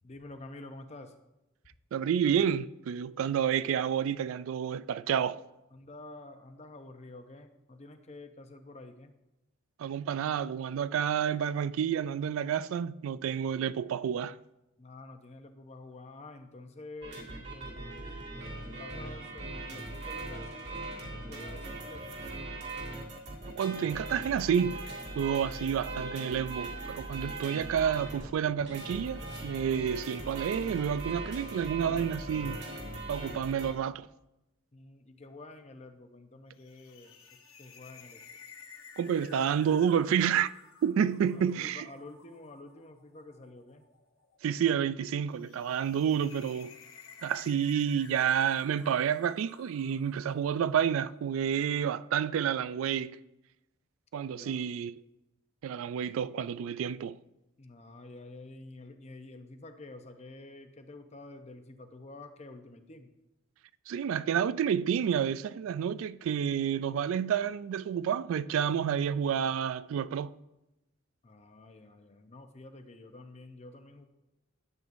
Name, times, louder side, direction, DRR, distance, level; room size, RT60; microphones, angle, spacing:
voice 1, 0.0-1.2 5.7-9.1 14.8-20.9 21.3-22.2 34.7-38.2 41.3-43.8 54.2-54.7 57.6-63.1 71.2-74.0, left 2 dB, 30° left, 0.7 m, -49 dB
voice 2, 1.9-5.4 9.8-14.4 23.5-24.8 25.2-32.6 33.1-34.1 39.0-40.5 40.8-41.9 44.4-46.7 47.2-53.2 54.1-54.9 55.6-57.2 63.9-70.3, right 8 dB, 75° right, 0.3 m, -29 dB
sound 1, 17.0-33.7, right 2 dB, 55° right, 2.0 m, -40 dB
sound 2, 36.5-50.9, left 6 dB, 80° left, 1.1 m, -54 dB
12.0 x 7.9 x 2.6 m
head